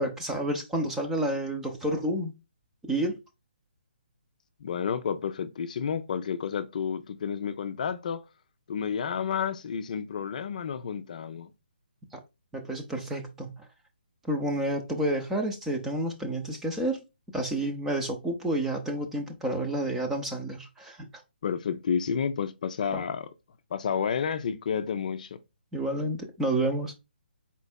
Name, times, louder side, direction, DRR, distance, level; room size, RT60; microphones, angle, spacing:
voice 1, 0.0-2.3 2.9-3.2 12.5-13.6 14.2-17.0 17.3-21.1 22.9-23.0 25.7-26.9, right 1 dB, 5° right, 0.7 m, -29 dB
voice 2, 4.6-8.2 8.7-11.5 21.4-23.3 23.7-25.4, left 7 dB, 45° left, 0.5 m, -30 dB
4.5 x 4.0 x 2.2 m
hypercardioid pair, 160°, 6 cm